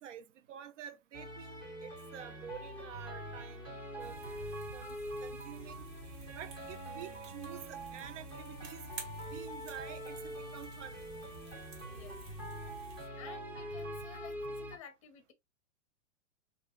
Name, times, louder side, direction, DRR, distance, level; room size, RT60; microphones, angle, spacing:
voice 1, 0.0-4.2 4.7-5.9 6.3-8.9 9.3-11.0, right 10 dB, 75° right, 0.7 m, -49 dB
sound 1, 1.1-14.8, equal, 15° right, 0.8 m, -44 dB
sound 2, 4.0-13.1, right 4 dB, 40° right, 1.1 m, -52 dB
voice 2, 13.2-15.3, left 9 dB, 25° left, 0.6 m, -52 dB
6.1 x 2.5 x 2.5 m
supercardioid pair, 175°, 37 cm